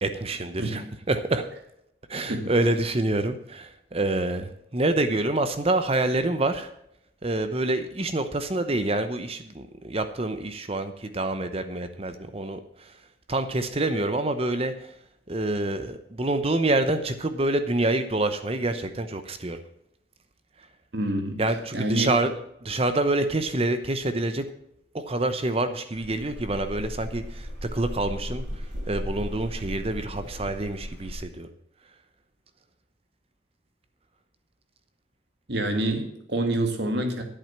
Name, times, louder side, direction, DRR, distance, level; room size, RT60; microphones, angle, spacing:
voice 1, 0.0-1.5 2.1-6.7 7.2-12.9 13.3-14.9 15.3-19.6 21.4-22.3 22.6-24.4 24.9-28.4 28.9-31.5, right 2 dB, 30° right, 10 dB, 0.8 m, -27 dB
voice 2, 20.9-21.4 21.7-22.1 35.5-37.2, right 1 dB, 60° right, 5 dB, 2.1 m, -26 dB
sound 1, 25.9-31.2, equal, 90° right, 5.6 m, -36 dB
10.5 x 8.6 x 5.9 m, 0.77 s
head